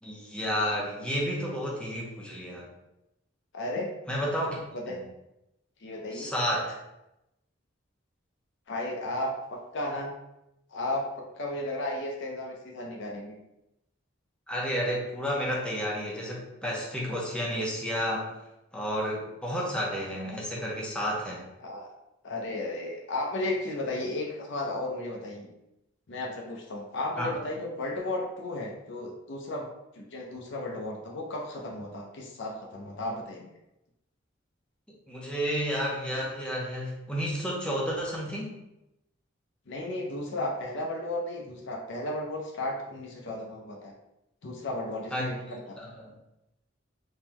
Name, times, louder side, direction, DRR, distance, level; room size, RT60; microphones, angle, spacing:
voice 1, 0.0-2.7 4.1-5.0 6.1-6.8 14.5-18.3 18.7-21.5 27.2-27.3 35.1-38.5 45.1-45.4 45.8-46.1, equal, 5° left, -4 dB, 0.8 m, -31 dB
voice 2, 3.5-3.9 4.7-5.0 5.8-6.3 8.7-10.1 10.7-13.4 21.6-21.9 22.2-25.5 26.1-29.7 30.0-33.5 39.7-43.9 44.4-45.8, left 1 dB, 65° left, 0 dB, 0.6 m, -34 dB
3.6 x 3.2 x 2.9 m, 0.89 s
head